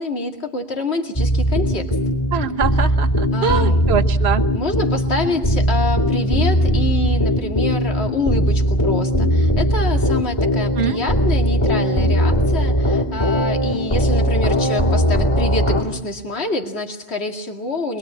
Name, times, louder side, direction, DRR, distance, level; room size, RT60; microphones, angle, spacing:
voice 1, 0.0-2.0 3.3-3.8 4.5-18.0, left 2 dB, 70° left, 3 dB, 2.5 m, -26 dB
sound 1, 1.2-15.8, equal, 25° left, 2.8 m, -19 dB
voice 2, 2.3-4.4 10.8-11.0, right 6 dB, 70° right, 7 dB, 1.4 m, -23 dB
24.0 x 22.0 x 8.6 m, 0.79 s
omnidirectional pair, 1.1 m